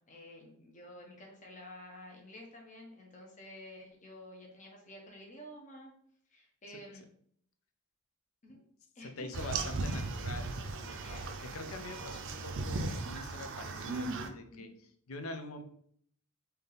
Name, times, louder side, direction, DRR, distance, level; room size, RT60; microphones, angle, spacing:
voice 1, 0.0-5.9 6.3-7.0 8.4-8.6 8.9-9.3 11.0-11.3 14.5-14.7, left 1 dB, 35° left, -1 dB, 0.9 m, -50 dB
voice 2, 9.0-11.2 11.5-14.7 15.1-15.6, left 2 dB, 70° left, 7 dB, 0.6 m, -44 dB
sound 1, 9.3-14.3, right 3 dB, 65° right, 0.5 m, -37 dB
3.5 x 2.8 x 4.0 m, 0.63 s
head